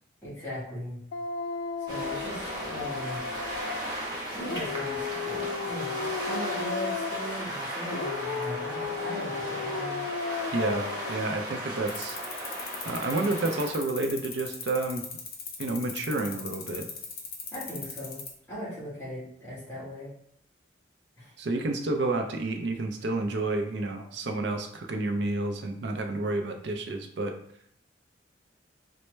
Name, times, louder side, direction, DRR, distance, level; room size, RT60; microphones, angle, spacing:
voice 1, 0.2-1.0 1.8-3.2 4.3-10.0 17.5-18.2 18.5-20.1 21.2-21.3, equal, 15° left, -9 dB, 1.5 m, -38 dB
Dog, 1.1-3.9 4.4-7.5 7.9-11.4, left 5 dB, 80° left, 0.3 m, -35 dB
sound 1, 1.9-13.7, right 1 dB, 20° right, 0.8 m, -36 dB
voice 2, 10.5-12.2 12.8-15.1 15.6-16.9 21.4-27.3, right 2 dB, 70° right, 5 dB, 0.5 m, -30 dB
sound 2, 11.9-18.3, left 6 dB, 50° left, 0.6 m, -38 dB
4.3 x 2.0 x 3.2 m, 0.70 s
head